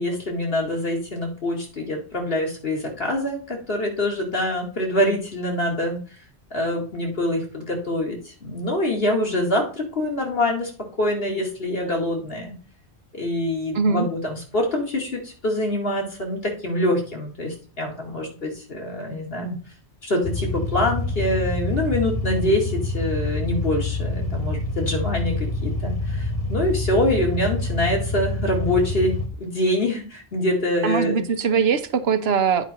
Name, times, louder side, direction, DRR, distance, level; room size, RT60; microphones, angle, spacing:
voice 1, 0.0-6.0 6.5-10.7 11.0-12.5 13.1-19.5 20.0-31.2, left 1 dB, 65° left, 2.5 m, -25 dB
voice 2, 13.7-14.1 30.8-32.6, right 6 dB, 75° right, 1.0 m, -21 dB
sound 1, 20.2-29.3, left 2 dB, 35° left, 1.2 m, -26 dB
9.0 x 5.0 x 4.3 m
omnidirectional pair, 1.1 m